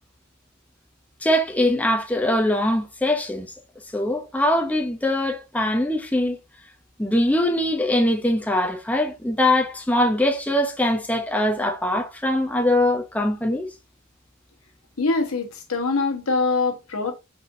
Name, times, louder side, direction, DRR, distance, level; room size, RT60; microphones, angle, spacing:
voice 1, 1.2-3.5 3.9-6.4 7.0-13.7, left 1 dB, 5° left, 0.6 m, -22 dB
voice 2, 15.0-17.1, left 3 dB, 80° left, 1.1 m, -23 dB
4.2 x 3.8 x 2.6 m
head